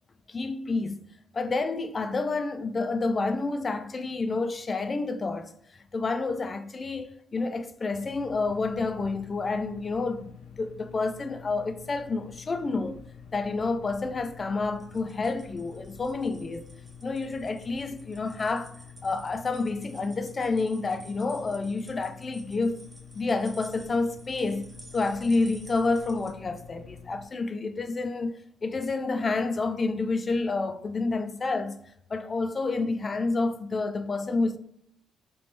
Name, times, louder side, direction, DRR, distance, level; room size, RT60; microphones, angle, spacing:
voice 1, 0.3-1.0 1.3-5.5 5.9-13.0 13.3-16.7 17.0-18.7 19.0-22.8 23.1-31.8 32.1-34.6, left 3 dB, 35° left, 0.3 m, -29 dB
sound 1, 8.0-27.3, left 7 dB, 75° left, 0.6 m, -48 dB
sound 2, 14.7-26.3, right 2 dB, 20° right, 0.6 m, -53 dB
3.0 x 3.0 x 3.2 m
cardioid pair, 90°, 0 cm